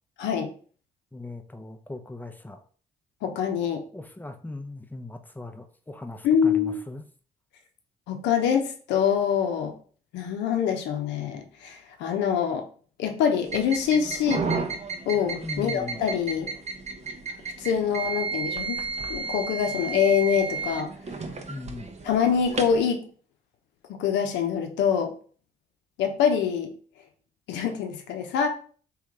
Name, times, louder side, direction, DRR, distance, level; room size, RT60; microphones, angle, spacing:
voice 1, 0.2-0.5 3.2-3.8 6.2-6.8 8.1-9.7 10.1-12.7 13.0-14.5 15.1-16.5 17.6-18.8 19.1-20.9 22.0-23.0 24.0-25.1 26.0-26.7 27.5-28.5, left 7 dB, 70° left, 5 dB, 0.8 m, -25 dB
voice 2, 1.1-2.6 3.9-7.0 15.4-16.0 21.5-21.9, left 2 dB, 10° left, 6 dB, 0.7 m, -39 dB
sound 1, 13.5-22.8, right 4 dB, 35° right, 0.8 m, -33 dB
3.2 x 3.1 x 3.7 m, 0.43 s
hypercardioid pair, 45°, 19 cm